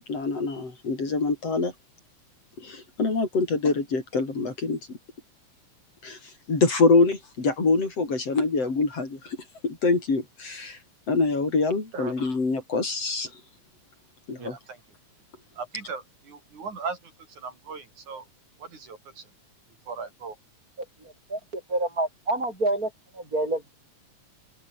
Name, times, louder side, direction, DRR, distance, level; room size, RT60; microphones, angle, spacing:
voice 1, 0.1-1.7 2.6-4.8 6.0-6.2 6.5-9.4 9.6-10.8 11.1-13.3 14.3-14.5, left 3 dB, 55° left, 6.4 m, -25 dB
voice 2, 14.4-14.8 15.6-17.0 17.4-18.2 18.6-19.2 19.9-20.4, right 5 dB, 85° right, 6.4 m, -37 dB
voice 3, 21.0-23.7, right 2 dB, 30° right, 7.1 m, -28 dB
open air
omnidirectional pair, 3.3 m